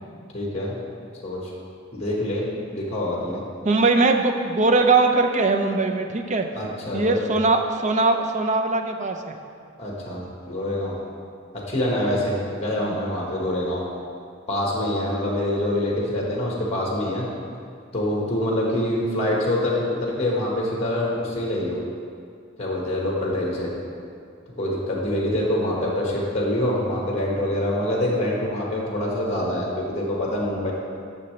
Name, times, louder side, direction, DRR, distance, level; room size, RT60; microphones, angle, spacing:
voice 1, 0.3-0.7 1.2-1.5 1.9-3.4 6.5-7.2 9.8-11.0 11.7-13.9 14.5-17.3 17.9-21.8 22.6-23.7 24.6-30.7, left 1 dB, 30° left, -3 dB, 1.4 m, -25 dB
voice 2, 3.6-6.5 6.9-9.3 12.8-13.0, right 3 dB, 35° right, 6 dB, 0.5 m, -21 dB
11.0 x 6.5 x 3.2 m, 2.3 s
head